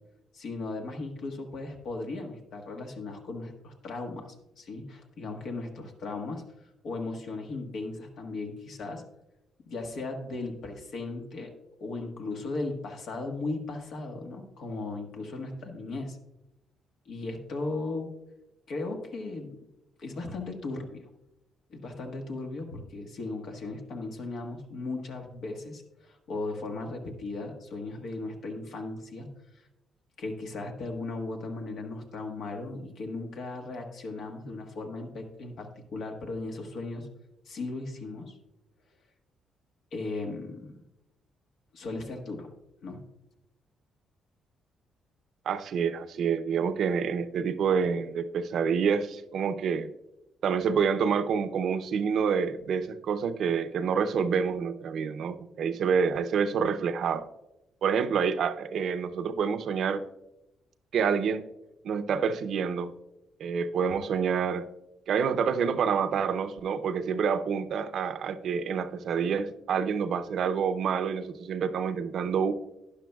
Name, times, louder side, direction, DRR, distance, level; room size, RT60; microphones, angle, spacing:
voice 1, 0.3-9.0 9.6-11.5 11.8-16.2 17.0-18.2 18.7-19.6 20.0-21.1 21.7-29.3 30.2-37.1 37.4-38.4 39.9-40.8 41.7-42.5 42.8-43.0, left 3 dB, 70° left, 3 dB, 1.4 m, -37 dB
voice 2, 45.5-49.9 50.4-57.2 57.8-60.0 60.9-61.5 61.8-62.9 63.4-64.6 65.1-72.5, right 6 dB, 65° right, 11 dB, 0.6 m, -27 dB
12.0 x 10.0 x 2.3 m, 0.93 s
cardioid pair, 90°, 0 cm